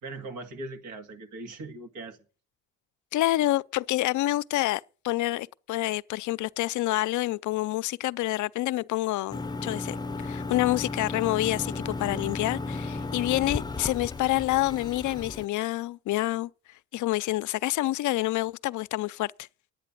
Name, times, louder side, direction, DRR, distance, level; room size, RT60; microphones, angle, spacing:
voice 1, 0.0-2.2, right 2 dB, 85° right, 2.0 m, -40 dB
voice 2, 3.1-10.0 10.2-16.5 16.9-19.3, left 16 dB, 75° left, 0.5 m, -27 dB
sound 1, 9.3-15.5, left 3 dB, 15° left, 0.6 m, -34 dB
10.5 x 9.0 x 8.4 m
cardioid pair, 90°, 30 cm